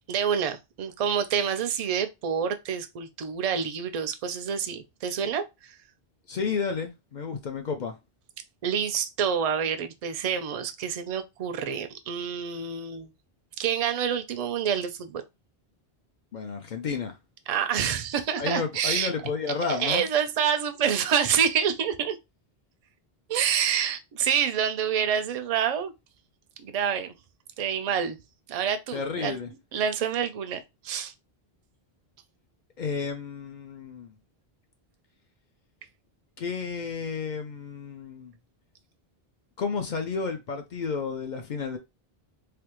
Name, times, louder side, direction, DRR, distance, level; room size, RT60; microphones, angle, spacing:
voice 1, 0.1-5.7 8.6-13.1 13.6-15.2 17.5-19.1 19.6-22.2 23.3-25.9 26.6-27.1 27.6-28.2 28.5-29.4 29.7-31.1, right 8 dB, 55° right, 0.4 m, -27 dB
voice 2, 6.3-8.0 16.3-17.2 18.4-20.1 28.9-29.5 32.8-34.1 36.4-38.3 39.6-41.8, left 5 dB, 55° left, 0.6 m, -31 dB
3.3 x 2.3 x 2.9 m
omnidirectional pair, 1.0 m